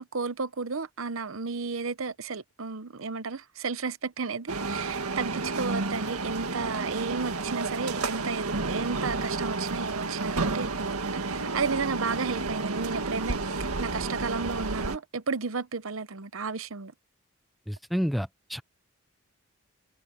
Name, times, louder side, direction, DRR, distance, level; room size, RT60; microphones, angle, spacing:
voice 1, 0.0-16.9, right 4 dB, 65° right, 0.8 m, -33 dB
sound 1, 4.5-15.0, right 3 dB, 90° right, 1.9 m, -31 dB
voice 2, 17.7-18.6, equal, ahead, 0.4 m, -29 dB
head